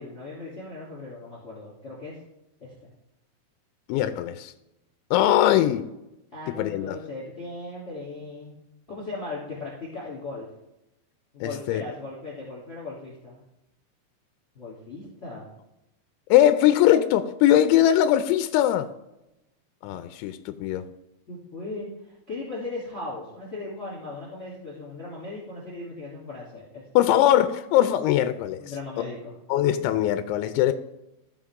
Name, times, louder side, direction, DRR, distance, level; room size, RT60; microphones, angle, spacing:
voice 1, 0.0-2.2 2.6-2.9 6.3-8.5 8.9-10.5 11.3-13.4 14.5-15.5 21.3-26.9 28.6-29.4, left 2 dB, 20° left, -5 dB, 2.4 m, -38 dB
voice 2, 3.9-4.5 5.1-5.9 6.6-7.0 11.4-11.8 16.3-18.9 19.8-20.8 27.0-28.6 29.5-30.7, left 12 dB, 90° left, 10 dB, 2.9 m, -21 dB
15.5 x 5.8 x 3.7 m, 0.90 s
omnidirectional pair, 5.2 m